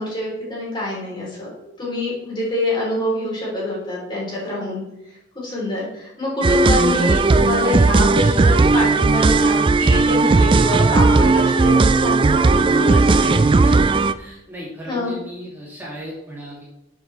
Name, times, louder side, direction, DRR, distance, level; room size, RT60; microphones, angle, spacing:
voice 1, 0.0-4.8 5.4-13.7 14.9-15.1, left 1 dB, 25° left, -5 dB, 3.5 m, -26 dB
sound 1, 6.4-14.1, right 3 dB, 25° right, 0.3 m, -15 dB
voice 2, 14.2-16.6, equal, 10° right, -6 dB, 2.6 m, -36 dB
12.5 x 7.2 x 3.3 m, 0.89 s
head